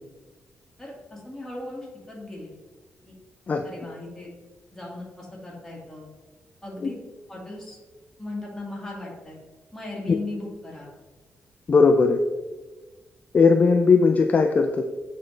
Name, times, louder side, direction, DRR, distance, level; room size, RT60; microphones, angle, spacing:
voice 1, 0.8-2.5 3.0-3.2 3.6-4.3 4.7-6.1 6.6-7.0 7.3-7.8 8.2-9.4 9.7-10.9, left 2 dB, 10° left, -4 dB, 1.8 m, -37 dB
voice 2, 11.7-12.2 13.3-14.8, left 4 dB, 35° left, 5 dB, 0.3 m, -18 dB
8.4 x 3.7 x 3.2 m, 1.2 s
cardioid pair, 120°, 4 cm